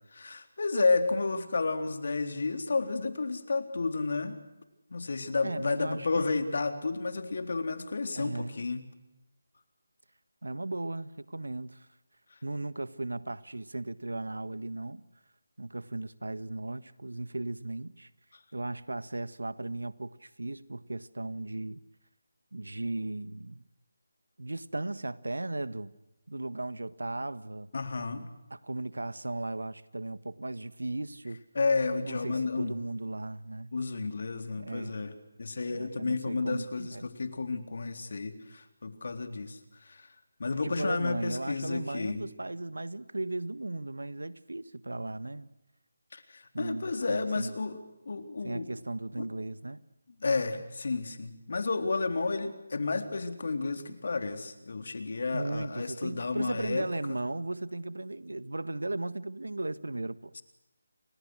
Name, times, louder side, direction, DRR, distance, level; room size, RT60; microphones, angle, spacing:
voice 1, 0.1-4.4 4.9-8.8 27.7-28.3 31.5-32.7 33.7-35.1 35.4-40.1 40.4-42.2 46.1-47.8 48.1-48.7 49.2-49.3 50.2-57.2 60.4-60.5, left 3 dB, 55° left, 3.8 m, -31 dB
voice 2, 5.4-6.3 8.1-8.6 10.4-11.9 12.4-15.0 15.6-18.1 18.5-21.8 22.5-23.7 24.4-25.9 26.3-27.7 28.5-31.4 32.0-33.7 34.6-35.1 35.7-37.1 40.6-45.5 46.5-47.6 48.4-49.8 55.3-60.3, right 2 dB, 85° right, 1.6 m, -36 dB
30.0 x 26.0 x 6.5 m
figure-of-eight pair, 160°, 0 cm